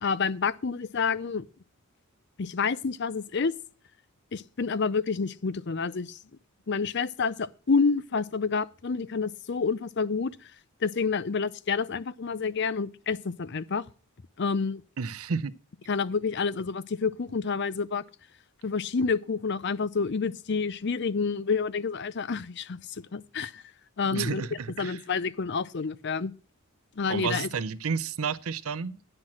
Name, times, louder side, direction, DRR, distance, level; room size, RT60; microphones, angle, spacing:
voice 1, 0.0-1.4 2.4-3.5 4.3-6.2 6.7-10.4 10.8-13.8 14.4-14.8 15.9-18.0 18.6-22.8 23.1-23.6 24.0-24.4 24.8-26.3 27.0-27.5, left 5 dB, 50° left, 0.6 m, -28 dB
voice 2, 15.0-15.5 24.0-25.0 27.1-29.0, right 5 dB, 75° right, 0.6 m, -31 dB
9.9 x 6.0 x 7.5 m
head